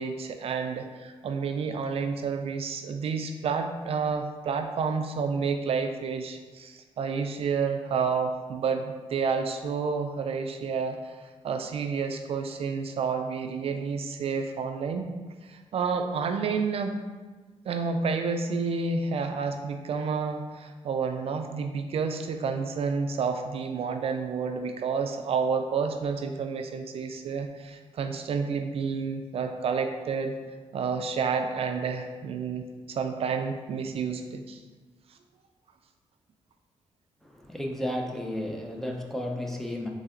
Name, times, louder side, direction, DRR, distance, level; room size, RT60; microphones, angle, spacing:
voice 1, 0.0-11.0 11.4-15.1 15.5-17.0 17.7-30.3 30.7-34.6, right 5 dB, 65° right, 5 dB, 0.4 m, -30 dB
voice 2, 37.2-39.9, left 1 dB, 5° left, 1 dB, 0.6 m, -33 dB
4.0 x 3.3 x 3.7 m, 1.3 s
cardioid pair, 85°, 11 cm